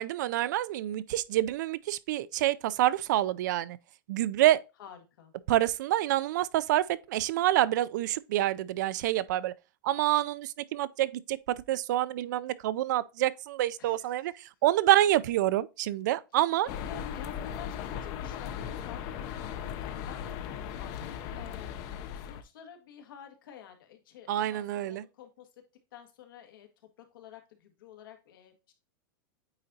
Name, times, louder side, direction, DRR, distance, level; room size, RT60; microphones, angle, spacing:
voice 1, 0.0-3.8 4.1-4.6 5.5-9.5 9.8-16.7 24.3-25.0, right 14 dB, 60° right, 0.4 m, -27 dB
voice 2, 4.8-5.3 13.8-14.3 16.6-25.6 25.9-26.7 27.0-28.7, left 8 dB, 80° left, 1.8 m, -50 dB
sound 1, 16.7-22.4, left 9 dB, 30° left, 0.6 m, -37 dB
8.7 x 4.0 x 2.7 m
supercardioid pair, 175°, 11 cm